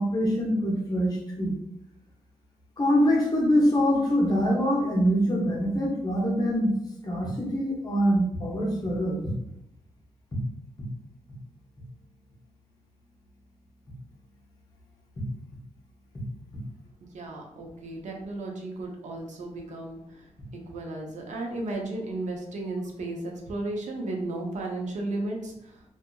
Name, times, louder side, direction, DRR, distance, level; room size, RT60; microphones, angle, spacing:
voice 1, 0.0-1.5 2.8-6.7 7.0-9.2, equal, 35° left, -3 dB, 0.9 m, -24 dB
voice 2, 17.0-25.8, right 2 dB, 85° right, 0 dB, 0.6 m, -34 dB
2.7 x 2.4 x 2.2 m, 0.80 s
wide cardioid pair, 105°, 12 cm